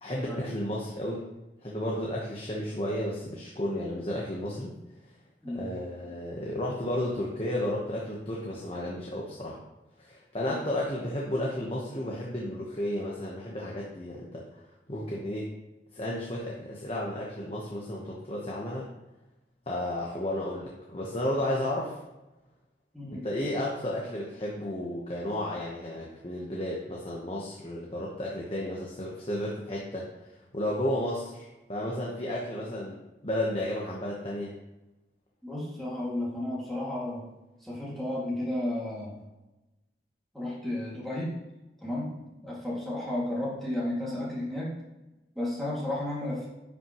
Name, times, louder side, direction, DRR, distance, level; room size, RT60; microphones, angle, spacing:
voice 1, 0.0-1.3 1.6-4.7 5.5-9.6 10.0-14.6 14.9-15.5 15.9-18.9 19.7-22.0 23.1-30.1 30.5-34.5, left 1 dB, 30° left, -4 dB, 1.1 m, -33 dB
voice 2, 35.4-37.2 37.6-39.1 40.3-41.3 41.8-42.1 42.4-44.7 45.4-46.5, left 1 dB, ahead, -8 dB, 2.2 m, -33 dB
10.5 x 5.8 x 3.1 m, 1.0 s
head